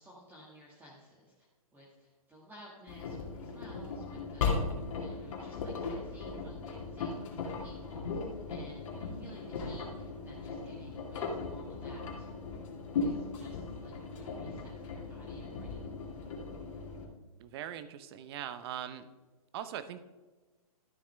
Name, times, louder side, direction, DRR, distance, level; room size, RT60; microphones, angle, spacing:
voice 1, 0.0-1.5 1.7-4.4 4.9-12.3 13.0-15.9, equal, 10° right, -6 dB, 1.9 m, -56 dB
Engine, 2.9-17.0, left 4 dB, 55° left, 2.3 m, -37 dB
voice 2, 17.4-19.0 19.5-20.0, right 10 dB, 40° right, 12 dB, 0.8 m, -41 dB
13.0 x 7.1 x 3.4 m, 1.3 s
hypercardioid pair, 140°, 19 cm